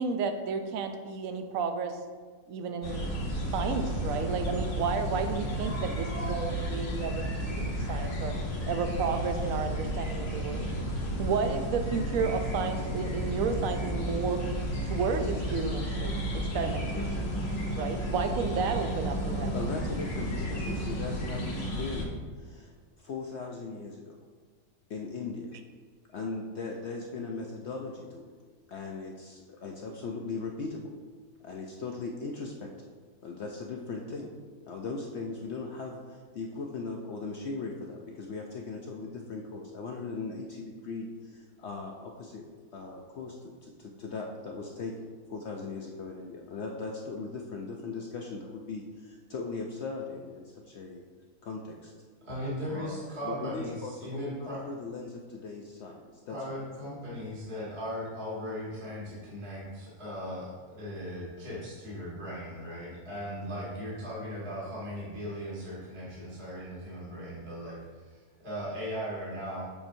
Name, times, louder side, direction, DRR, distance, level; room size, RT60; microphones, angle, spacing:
voice 1, 0.0-2.0 2.5-3.1 3.5-8.3 8.7-10.7 11.2-14.4 14.9-17.3 17.7-19.6, right 5 dB, 70° right, 7 dB, 0.9 m, -32 dB
sound 1, 2.8-22.0, equal, 50° left, 1.2 m, -32 dB
voice 2, 19.5-22.7 23.0-24.2 24.9-25.6 26.1-28.3 28.7-30.9 31.4-32.9 33.2-34.3 34.7-42.4 42.7-51.0 51.4-51.9 52.7-53.0 53.2-56.9, left 4 dB, 65° left, 1 dB, 0.7 m, -39 dB
voice 3, 52.2-54.6 56.3-69.6, equal, 40° right, -8 dB, 2.1 m, -38 dB
6.8 x 5.8 x 2.6 m, 1.5 s
omnidirectional pair, 1.7 m